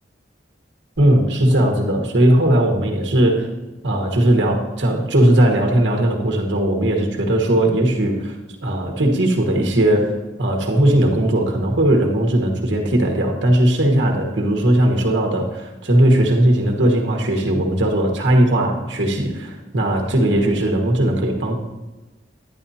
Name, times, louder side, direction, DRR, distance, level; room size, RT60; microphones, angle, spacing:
voice 1, 1.0-3.5 3.8-21.5, right 1 dB, 85° right, 1 dB, 1.3 m, -18 dB
11.0 x 10.0 x 2.8 m, 1.1 s
head